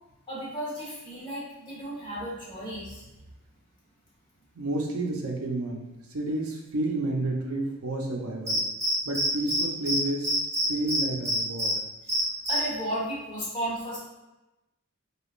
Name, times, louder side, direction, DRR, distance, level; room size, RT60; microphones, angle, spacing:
voice 1, 0.3-3.1 12.5-14.0, right 1 dB, 25° left, -7 dB, 1.3 m, -34 dB
voice 2, 4.6-5.9 6.1-8.6 9.1-10.3 10.7-11.8, right 2 dB, 80° right, 0 dB, 0.6 m, -30 dB
Cricket, 8.5-9.6 9.9-10.0 10.2-11.7 12.1-12.6, right 1 dB, 15° right, 1.2 m, -26 dB
4.9 x 2.3 x 2.5 m, 1.0 s
head